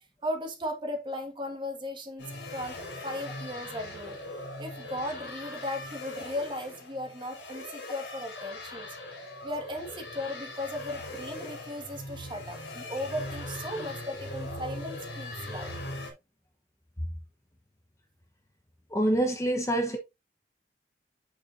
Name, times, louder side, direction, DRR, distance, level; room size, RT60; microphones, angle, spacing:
voice 1, 0.2-2.3 2.5-2.8 3.0-4.2 4.6-8.9 9.4-15.8, left 1 dB, 25° right, 1.7 m, -36 dB
sound 1, 2.2-16.1, left 1 dB, 90° left, 3.4 m, -40 dB
voice 2, 18.9-20.0, right 1 dB, 15° left, 0.9 m, -26 dB
8.2 x 6.6 x 2.6 m
head